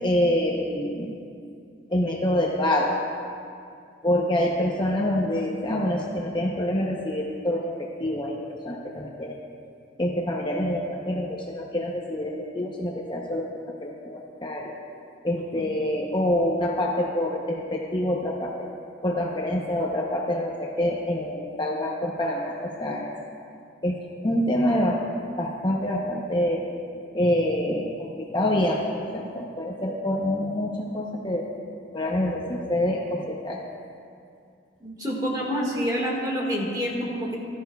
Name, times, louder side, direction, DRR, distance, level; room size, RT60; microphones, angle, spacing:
voice 1, 0.0-1.2 1.9-2.9 4.0-8.4 8.6-9.4 10.0-13.5 13.8-14.7 15.2-18.5 19.0-23.1 23.8-24.0 24.2-25.0 25.3-26.6 27.1-28.8 29.1-31.5 31.9-33.6, left 1 dB, 25° left, -2 dB, 0.8 m, -26 dB
voice 2, 34.8-37.4, equal, 20° right, -2 dB, 1.7 m, -27 dB
16.5 x 12.5 x 2.3 m, 2.4 s
head